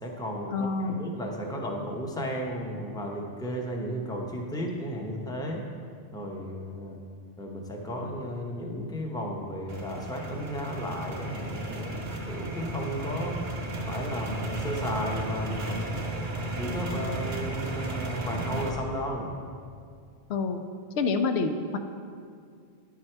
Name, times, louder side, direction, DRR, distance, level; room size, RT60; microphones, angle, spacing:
voice 1, 0.0-5.6 6.1-7.0 7.4-13.4 13.9-15.9 16.4-19.4, equal, 5° left, 0 dB, 0.7 m, -34 dB
voice 2, 0.5-1.0 20.3-20.6 21.0-21.8, left 4 dB, 80° left, 6 dB, 0.8 m, -27 dB
sound 1, 9.7-18.7, right 2 dB, 70° right, 1.1 m, -34 dB
10.0 x 4.8 x 4.4 m, 2.2 s
omnidirectional pair, 1.1 m